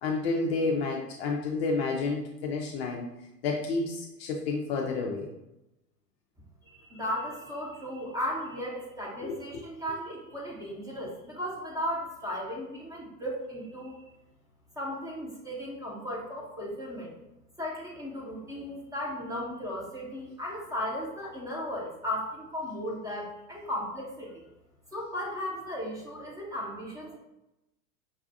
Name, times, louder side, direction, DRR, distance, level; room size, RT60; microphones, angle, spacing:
voice 1, 0.0-3.0 3.4-5.3 9.2-9.4, left 3 dB, 40° left, 0 dB, 0.6 m, -30 dB
voice 2, 6.8-14.0 14.8-17.1 17.6-24.4 24.9-27.2, equal, 5° right, -4 dB, 0.9 m, -36 dB
5.5 x 2.3 x 2.6 m, 0.92 s
figure-of-eight pair, 100°, 49 cm